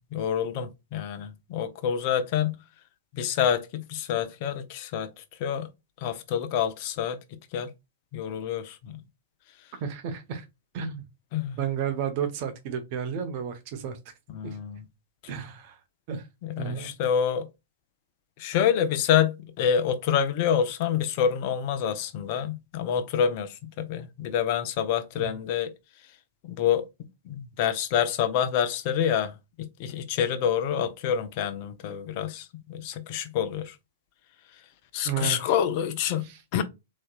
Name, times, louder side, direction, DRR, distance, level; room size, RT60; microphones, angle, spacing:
voice 1, 0.1-2.6 3.1-5.1 5.4-5.7 6.0-7.2 7.5-7.7 8.1-9.0 11.3-11.6 14.3-14.8 16.4-17.5 18.4-25.7 26.5-26.8 27.3-29.3 29.6-33.7 34.9-36.3 36.5-36.6, left 8 dB, 45° left, 0.7 m, -27 dB
voice 2, 9.8-10.4 10.7-11.1 11.6-14.1 14.4-14.6 15.3-15.8 16.1-16.3 16.6-16.9 25.2-25.3 35.0-35.5 36.2-36.4, right 8 dB, 45° right, 1.0 m, -32 dB
4.1 x 3.1 x 2.4 m
hypercardioid pair, 110°, 0 cm